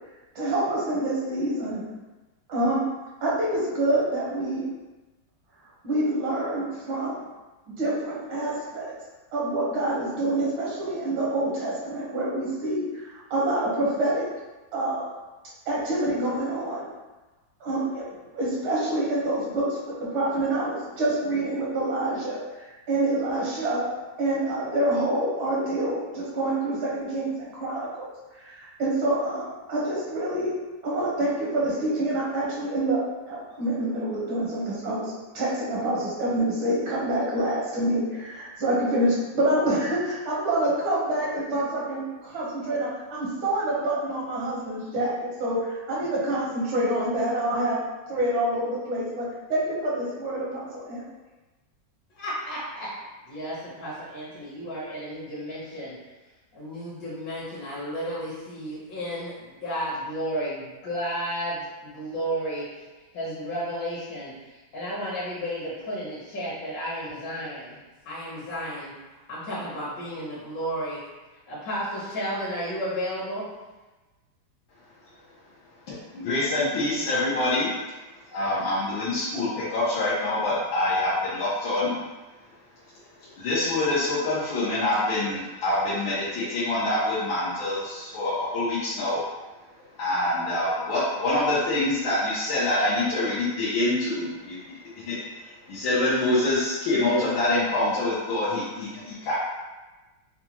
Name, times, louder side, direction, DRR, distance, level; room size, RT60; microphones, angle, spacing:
voice 1, 0.4-1.9 2.5-2.8 3.2-4.7 5.8-7.2 7.7-8.9 9.3-14.3 14.7-15.1 15.7-16.9 17.6-18.0 18.3-23.9 24.2-28.1 28.3-30.5 30.8-47.8 48.1-51.0, right 1 dB, 85° right, -5 dB, 1.9 m, -27 dB
voice 2, 52.2-52.9 53.3-56.0 56.5-62.9 63.1-67.8 68.0-71.0 71.5-73.5, equal, 70° left, -8 dB, 1.7 m, -33 dB
voice 3, 75.9-77.7 78.3-81.9 83.4-89.2 90.0-99.3, left 2 dB, 90° left, -9 dB, 1.7 m, -26 dB
5.5 x 2.2 x 2.9 m, 1.2 s
omnidirectional pair, 2.1 m